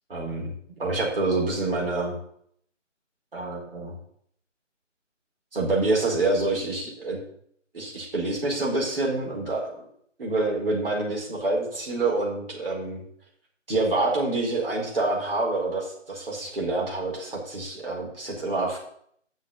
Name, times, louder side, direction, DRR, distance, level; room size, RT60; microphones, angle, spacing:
voice 1, 0.1-2.2 3.3-4.0 5.5-7.2 7.7-9.8 10.2-13.0 13.7-18.8, right 2 dB, 45° right, -3 dB, 4.4 m, -27 dB
8.3 x 6.4 x 8.3 m, 0.66 s
figure-of-eight pair, 155°, 38 cm